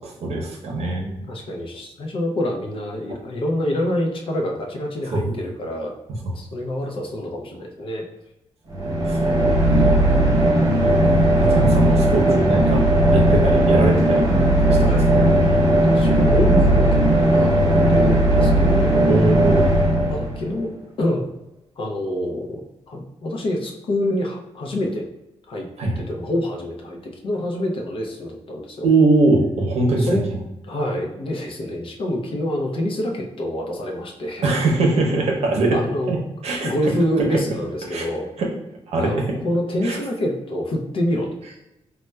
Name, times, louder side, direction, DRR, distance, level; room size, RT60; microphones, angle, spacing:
voice 1, 0.0-1.2 5.1-5.2 8.7-9.3 11.4-12.8 13.1-14.2 14.7-15.0 19.1-19.7 25.8-26.0 28.8-30.4 34.4-35.8 36.1-36.2 36.4-36.7 37.9-38.0 38.4-38.5 38.9-39.4 39.8-40.0, right 2 dB, 75° right, 0 dB, 0.7 m, -21 dB
voice 2, 1.3-5.9 6.3-8.1 14.7-15.1 15.6-19.0 20.1-20.7 21.0-21.3 21.8-22.6 22.9-25.1 25.5-25.7 26.0-28.8 30.0-30.2 30.7-34.5 35.7-36.1 36.6-38.3 39.0-41.3, left 1 dB, 55° left, 1 dB, 0.5 m, -26 dB
sound 1, 8.7-20.6, right 1 dB, 35° right, 0.7 m, -17 dB
4.1 x 2.1 x 2.2 m, 0.92 s
wide cardioid pair, 170°, 11 cm